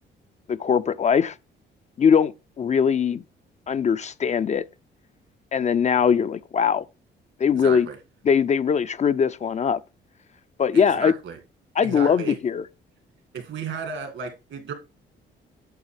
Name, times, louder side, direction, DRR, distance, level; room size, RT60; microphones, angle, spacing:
voice 1, 0.5-1.3 2.0-2.3 2.6-3.2 3.7-4.6 5.5-6.8 7.4-7.9 8.2-9.8 10.6-11.1 11.8-12.7, left 7 dB, 35° left, 0.4 m, -21 dB
voice 2, 7.5-8.0 10.7-11.4 11.8-12.4 13.3-14.7, right 6 dB, 75° right, 2.1 m, -34 dB
8.9 x 6.7 x 3.3 m
cardioid pair, 90°, 20 cm